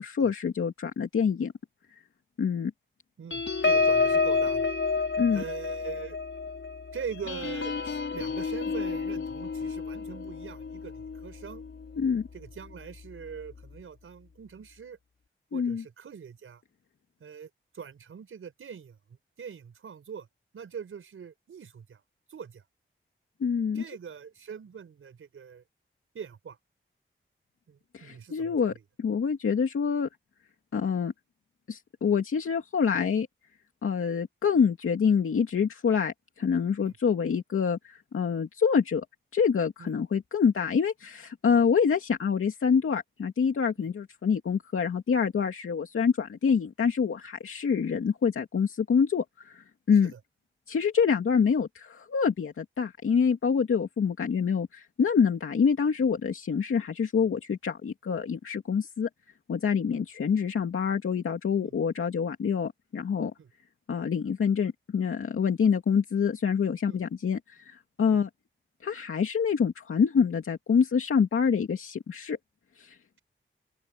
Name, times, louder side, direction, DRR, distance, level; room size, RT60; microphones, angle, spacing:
voice 1, 0.0-1.5 2.4-2.7 5.2-5.4 12.0-12.3 15.5-15.8 23.4-23.8 27.9-28.7 29.0-30.1 30.7-31.1 31.7-33.3 33.8-39.0 39.3-50.1 50.7-59.1 59.5-63.3 63.9-68.3 68.8-72.4 72.8-73.0, left 6 dB, 85° left, 2.4 m, -26 dB
voice 2, 3.2-4.7 5.3-6.2 6.9-11.6 12.3-15.0 15.5-16.6 17.2-17.5 17.7-19.0 19.4-20.3 20.5-22.0 22.3-22.6 23.7-25.6 26.1-26.6 27.7-28.8 36.8-36.9 39.8-39.9 43.8-43.9 50.0-50.2 59.9-60.0 61.6-61.7 63.4-63.5 66.9-67.0 68.1-68.2, right 7 dB, 90° right, 5.0 m, -42 dB
sound 1, 3.3-12.2 12.7-12.9 13.2-13.5, left 4 dB, 70° left, 5.1 m, -29 dB
open air
cardioid pair, 60°, 21 cm